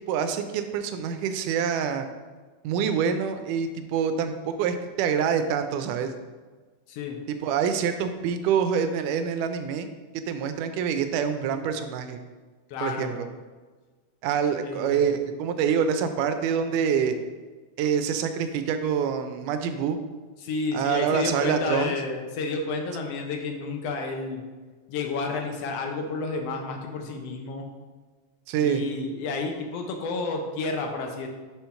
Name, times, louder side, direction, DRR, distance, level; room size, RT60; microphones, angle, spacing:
voice 1, 0.1-2.1 2.6-6.1 7.3-9.9 10.3-12.2 12.8-13.3 14.2-17.2 17.8-20.0 20.7-21.9 28.5-28.8, right 7 dB, 90° right, 8 dB, 2.2 m, -26 dB
voice 2, 6.9-7.2 12.7-13.2 14.6-15.2 20.4-24.4 24.9-27.7 28.6-31.3, left 4 dB, 75° left, 3 dB, 1.5 m, -31 dB
5.7 x 4.5 x 5.6 m, 1.4 s
omnidirectional pair, 3.6 m